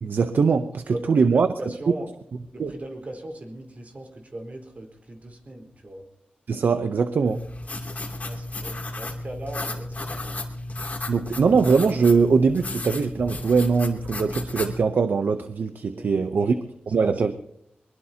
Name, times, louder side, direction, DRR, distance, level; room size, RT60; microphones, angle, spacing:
voice 1, 0.0-1.5 2.6-2.7 6.5-7.4 11.1-16.5 16.9-17.3, right 5 dB, 80° right, 9 dB, 0.7 m, -21 dB
voice 2, 0.9-2.1 2.5-6.1 8.2-10.5 15.9-16.5 17.0-17.2, right 1 dB, 50° right, 2 dB, 4.3 m, -38 dB
sound 1, 7.3-14.8, left 2 dB, 50° left, 2.8 m, -33 dB
23.0 x 21.5 x 2.8 m, 0.72 s
cardioid pair, 60°, 3 cm